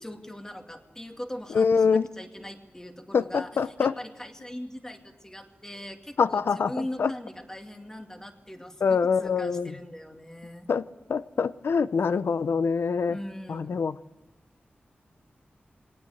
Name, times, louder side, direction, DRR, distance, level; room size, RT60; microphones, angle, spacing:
voice 1, 0.0-10.7 13.1-13.8, left 1 dB, 15° left, 4 dB, 2.3 m, -40 dB
voice 2, 1.5-2.1 3.1-3.9 6.2-6.7 7.0-7.1 8.8-9.7 10.7-10.8 11.1-13.2 13.5-14.0, left 5 dB, 85° left, 15 dB, 0.7 m, -24 dB
21.5 x 18.5 x 8.0 m, 1.1 s
wide cardioid pair, 120°, 4 cm